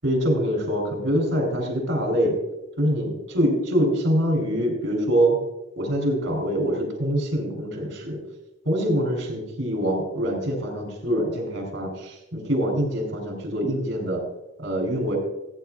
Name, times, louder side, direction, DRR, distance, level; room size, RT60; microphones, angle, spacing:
voice 1, 0.0-2.4 2.8-5.4 5.8-8.2 8.7-14.2 14.6-15.2, equal, 65° right, 2 dB, 3.5 m, -24 dB
17.5 x 9.4 x 2.4 m, 0.95 s
head